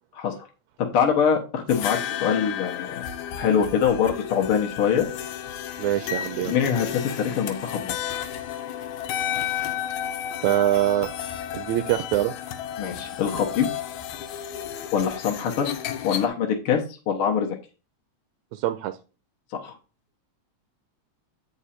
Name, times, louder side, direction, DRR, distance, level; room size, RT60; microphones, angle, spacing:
voice 1, 0.8-3.0 3.4-5.1 6.5-8.2 12.8-13.7 14.9-15.7 16.0-16.8 17.1-17.6 19.5-19.7, left 7 dB, 60° left, 1 dB, 1.7 m, -24 dB
sound 1, 1.7-16.3, left 10 dB, 85° left, 2.2 m, -32 dB
voice 2, 5.8-6.6 10.4-11.1 11.5-12.3 18.5-19.0, right 13 dB, 80° right, 8 dB, 1.9 m, -24 dB
8.0 x 4.9 x 4.3 m, 0.33 s
omnidirectional pair, 3.3 m